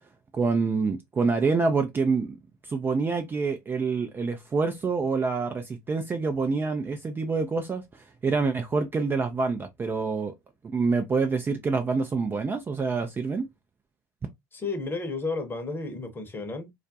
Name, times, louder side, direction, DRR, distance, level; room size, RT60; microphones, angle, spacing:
voice 1, 0.3-2.4 2.6-10.3 10.6-13.5, right 4 dB, 20° right, 0.4 m, -26 dB
voice 2, 14.5-16.7, left 3 dB, 20° left, 0.9 m, -32 dB
2.3 x 2.1 x 2.6 m
hypercardioid pair, 80°, 11 cm